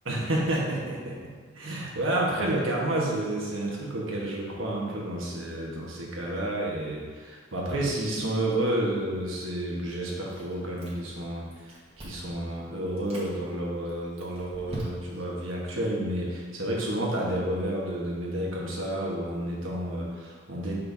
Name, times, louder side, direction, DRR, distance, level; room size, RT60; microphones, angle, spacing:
voice 1, 0.0-20.7, right 1 dB, 80° right, -3 dB, 1.3 m, -30 dB
Chewing mastication, 10.3-11.2 11.5-12.3 12.9-13.3 13.9-15.3, right 1 dB, 30° right, 1.4 m, -42 dB
6.9 x 5.5 x 2.8 m, 1.5 s
head